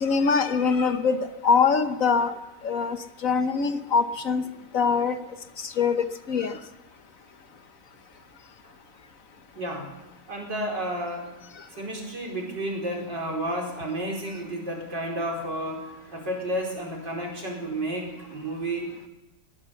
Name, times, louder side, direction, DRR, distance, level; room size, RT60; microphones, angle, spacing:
voice 1, 0.0-2.3 2.6-3.0 3.2-4.4 4.7-5.2 5.6-6.6, left 5 dB, 55° left, 9 dB, 1.3 m, -23 dB
voice 2, 9.6-9.9 10.3-11.3 11.7-15.9 16.1-18.9, right 1 dB, 85° right, 0 dB, 5.3 m, -31 dB
21.5 x 17.0 x 7.1 m, 1.0 s
omnidirectional pair, 1.9 m